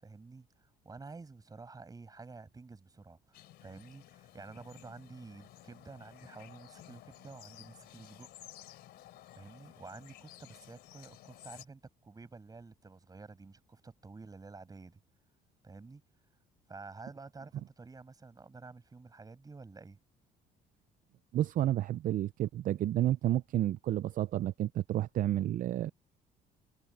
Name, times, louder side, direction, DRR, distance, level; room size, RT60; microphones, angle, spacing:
voice 1, 0.0-8.3 9.3-15.0 15.6-16.0 16.7-20.0, right 4 dB, 20° right, 6.1 m, -50 dB
sound 1, 3.3-11.7, left 14 dB, 75° left, 3.1 m, -55 dB
voice 2, 21.3-25.9, right 13 dB, 55° right, 0.5 m, -30 dB
cardioid pair, 110°, 17 cm